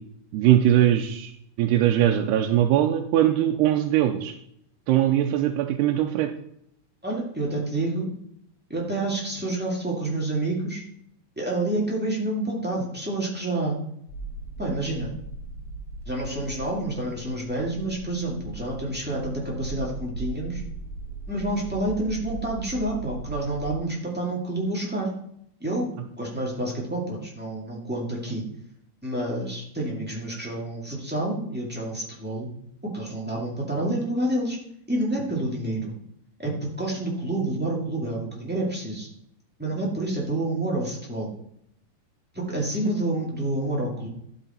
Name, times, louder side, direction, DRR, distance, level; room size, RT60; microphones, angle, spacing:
voice 1, 0.3-1.3 1.6-4.3 4.9-6.3, right 12 dB, 90° right, 3 dB, 2.7 m, -21 dB
voice 2, 7.0-8.1 8.7-10.8 11.3-13.7 14.6-15.1 16.0-20.6 21.3-25.1 25.6-28.4 29.0-32.5 32.8-34.6 34.9-35.9 36.4-39.1 39.6-41.3 42.3-44.1, right 1 dB, 10° right, -4 dB, 0.6 m, -28 dB
sound 1, 14.1-23.8, right 3 dB, 60° left, 2.6 m, -38 dB
12.5 x 6.9 x 4.4 m, 0.72 s
omnidirectional pair, 4.7 m